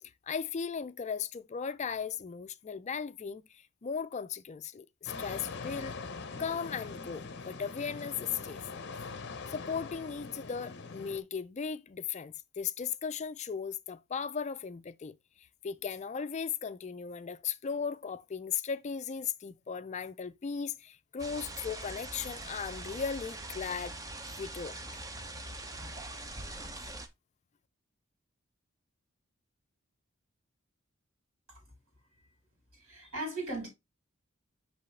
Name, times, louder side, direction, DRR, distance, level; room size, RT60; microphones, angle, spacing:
voice 1, 0.0-6.0 6.4-8.6 9.5-24.0 24.4-24.8, left 6 dB, 35° left, 0.3 m, -37 dB
sound 1, 5.1-11.2, left 4 dB, 55° left, 0.8 m, -42 dB
sound 2, 21.2-27.1, right 2 dB, 15° right, 0.7 m, -42 dB
voice 2, 32.7-33.7, right 2 dB, 75° right, 4.5 m, -37 dB
6.0 x 5.5 x 3.2 m
head